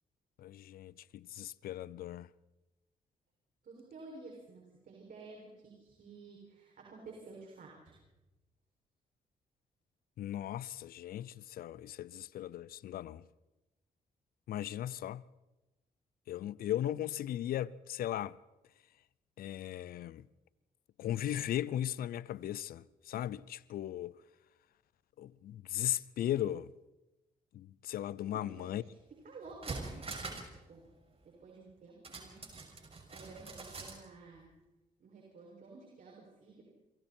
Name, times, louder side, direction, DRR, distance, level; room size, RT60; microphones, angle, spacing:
voice 1, 0.4-2.3 10.2-13.2 14.5-15.2 16.3-18.4 19.4-20.2 21.0-24.1 25.2-26.7 27.5-28.8, left 12 dB, 80° left, 0.7 m, -37 dB
voice 2, 3.6-7.9 28.3-28.8 29.2-30.3 30.7-30.8 31.2-32.5 33.1-34.5 35.0-36.6, right 3 dB, 65° right, 6.5 m, -52 dB
sound 1, 29.0-29.1 29.4-30.6 30.8-30.9 32.0-34.0 34.3-34.4, right 3 dB, 40° right, 6.1 m, -44 dB
29.5 x 23.5 x 4.5 m
cardioid pair, 65°, 15 cm